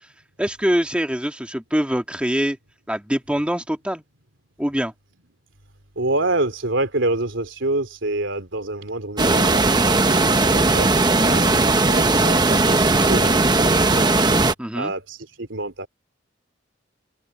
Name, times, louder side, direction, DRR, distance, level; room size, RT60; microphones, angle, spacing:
voice 1, 0.4-2.6 2.9-4.0 4.6-4.9 14.6-14.9, equal, 5° right, 1.8 m, -24 dB
voice 2, 5.9-10.9 11.2-14.1 14.7-15.9, right 2 dB, 80° right, 3.2 m, -27 dB
sound 1, 9.2-14.5, right 2 dB, 20° right, 1.0 m, -18 dB
open air
head